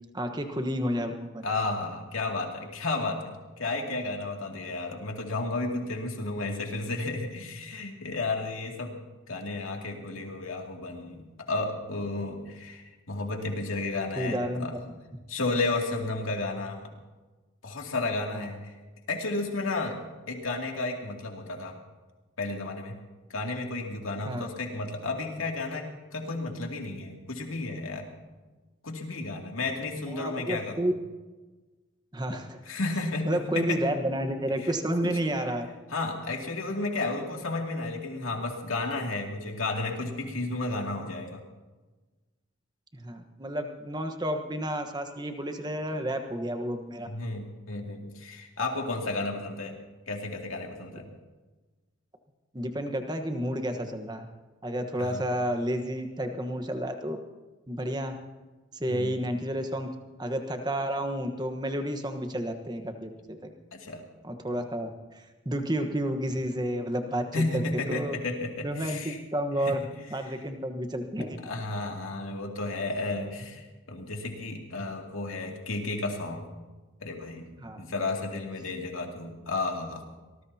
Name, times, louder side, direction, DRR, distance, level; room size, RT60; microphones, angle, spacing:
voice 1, 0.1-1.5 14.2-14.8 18.3-18.5 24.2-24.5 30.1-30.9 32.1-32.6 33.2-35.7 42.9-47.1 52.5-54.2 54.6-57.2 57.7-58.1 58.7-59.9 60.2-63.5 64.2-67.6 67.9-68.1 68.6-69.8 70.1-71.4 77.6-77.8, equal, 20° right, 6 dB, 1.2 m, -31 dB
voice 2, 1.4-8.9 9.3-14.7 15.3-16.9 17.6-18.7 19.1-20.0 20.3-21.7 22.4-23.0 23.3-28.1 28.8-30.8 32.7-33.8 34.6-34.7 35.0-35.1 35.9-41.4 47.0-49.7 50.1-51.1 55.0-55.2 58.9-59.2 63.7-64.0 67.3-69.2 69.6-69.7 70.3-70.4 71.4-76.5 77.0-77.5 77.8-80.0, left 2 dB, 90° left, 1 dB, 2.5 m, -32 dB
24.5 x 19.0 x 2.8 m, 1.2 s
head